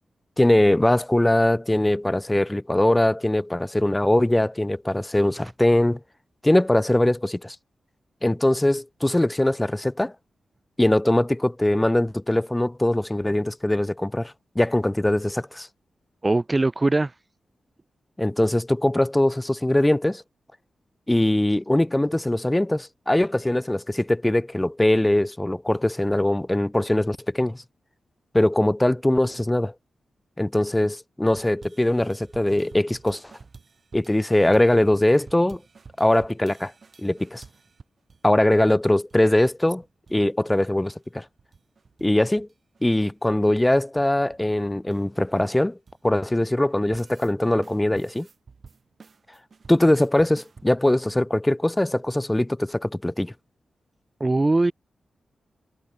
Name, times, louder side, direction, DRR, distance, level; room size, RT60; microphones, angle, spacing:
voice 1, 0.4-6.0 6.4-7.6 8.2-10.1 10.8-15.7 18.2-20.2 21.1-27.6 28.3-29.7 30.4-33.2 33.9-35.6 36.0-36.7 37.0-37.4 38.2-39.8 40.1-41.2 42.0-42.5 42.8-45.8 46.0-48.3 49.7-53.3, left 1 dB, 15° left, 1.9 m, -21 dB
voice 2, 16.2-17.1 54.2-54.7, right 2 dB, 30° right, 1.2 m, -21 dB
sound 1, 31.3-38.2 38.5-38.6 38.9-39.6 39.8-40.2 40.4-42.1 42.4-46.3 46.7-47.3 47.6-50.7, right 5 dB, 55° right, 5.2 m, -50 dB
cardioid pair, 60°, 0 cm